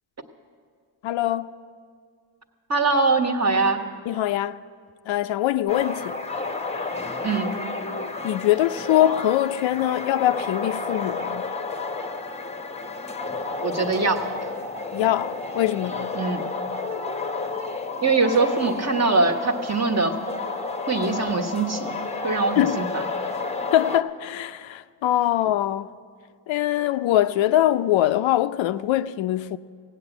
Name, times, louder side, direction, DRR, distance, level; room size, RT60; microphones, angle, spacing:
voice 1, 1.0-1.5 4.1-4.6 5.1-6.2 8.2-11.4 14.9-16.2 22.6-22.8 23.7-25.9 26.5-29.6, left 13 dB, 75° left, 0.5 m, -23 dB
voice 2, 2.7-3.8 7.2-7.6 13.6-14.3 16.1-16.4 18.0-20.1 20.9-22.0 22.2-22.9, right 3 dB, 35° right, 1.3 m, -22 dB
sound 1, 5.7-24.0, left 3 dB, 15° left, 0.8 m, -31 dB
16.5 x 9.1 x 7.9 m
cardioid pair, 90°, 47 cm